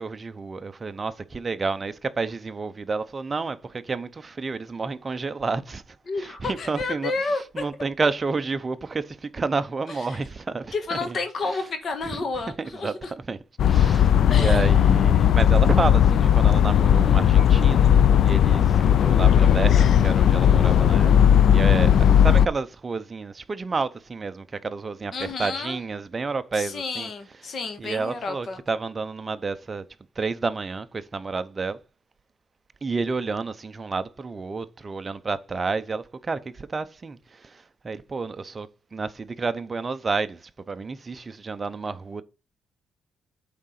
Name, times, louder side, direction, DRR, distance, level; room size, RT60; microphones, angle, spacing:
voice 1, 0.0-5.8 6.2-7.1 7.5-10.7 11.1-11.2 12.0-12.2 12.6-13.4 13.7-17.9 18.2-21.1 21.5-21.9 22.2-27.1 27.8-29.8 30.2-31.8 32.8-42.2, right 4 dB, 30° right, 0.6 m, -30 dB
voice 2, 6.1-7.7 9.9-10.2 10.7-13.1 14.3-14.7 25.1-25.8 26.5-28.6, left 3 dB, 45° left, 1.6 m, -31 dB
sound 1, 13.6-22.5, left 9 dB, 65° left, 0.4 m, -17 dB
8.7 x 3.8 x 5.8 m
cardioid pair, 110°, 0 cm